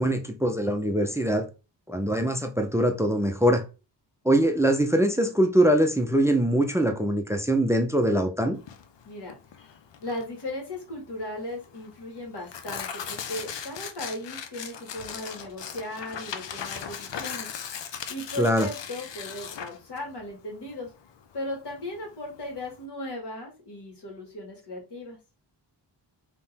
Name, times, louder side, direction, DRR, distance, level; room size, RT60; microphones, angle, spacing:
voice 1, 0.0-1.5 1.9-3.7 4.2-8.6 18.4-18.7, right 1 dB, 5° right, 0.4 m, -23 dB
Tearing, 8.6-22.8, left 7 dB, 80° left, 0.7 m, -39 dB
voice 2, 9.0-9.4 10.0-17.5 18.1-20.9 21.3-25.2, left 1 dB, 65° left, 1.9 m, -37 dB
3.7 x 2.9 x 4.1 m
wide cardioid pair, 180°, 43 cm